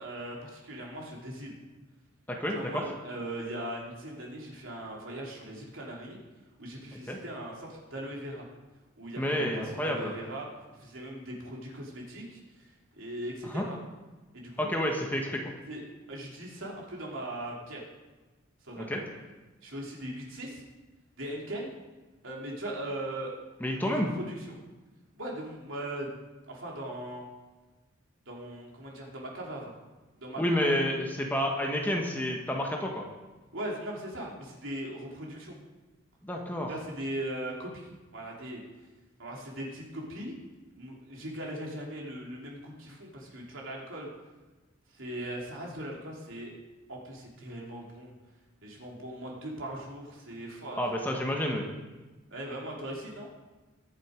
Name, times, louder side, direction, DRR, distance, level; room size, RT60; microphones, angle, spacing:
voice 1, 0.0-1.5 2.5-6.2 6.6-8.5 9.0-10.5 10.8-12.4 12.9-13.8 14.3-14.7 15.7-15.8 16.1-17.8 18.6-19.0 19.6-20.6 21.2-21.8 22.2-23.3 23.7-24.5 25.1-26.1 26.5-27.2 28.3-29.7 30.2-30.9 33.5-35.6 36.7-38.6 39.2-40.3 40.7-44.1 45.0-46.5 46.9-48.1 48.6-50.8 52.3-53.3, right 1 dB, 70° right, -2 dB, 3.2 m, -39 dB
voice 2, 2.3-2.8 7.1-7.2 9.2-10.1 13.4-13.6 14.6-15.4 18.8-19.0 23.6-24.1 30.4-33.0 36.2-36.7 50.8-51.6, equal, 10° left, 0 dB, 1.4 m, -29 dB
22.0 x 7.7 x 5.1 m, 1.2 s
head